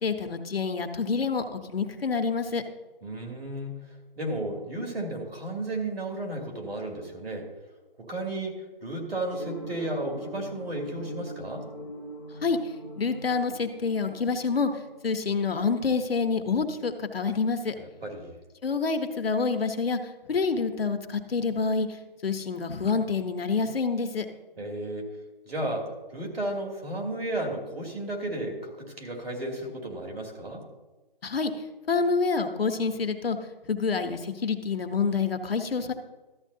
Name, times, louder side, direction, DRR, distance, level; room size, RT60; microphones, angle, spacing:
voice 1, 0.0-2.6 12.4-12.6 13.0-14.7 15.0-17.7 18.6-20.0 20.3-21.9 22.2-24.3 31.2-31.5 31.9-33.4 33.7-35.9, left 5 dB, 80° left, 7 dB, 1.1 m, -27 dB
voice 2, 3.0-3.7 4.2-7.5 8.1-11.7 17.8-18.3 24.6-25.1 25.5-30.6, right 1 dB, 90° right, 1 dB, 2.7 m, -33 dB
sound 1, 9.3-15.5, equal, 10° left, 2.0 m, -41 dB
13.0 x 8.4 x 2.7 m, 1.1 s
hypercardioid pair, 175°, 29 cm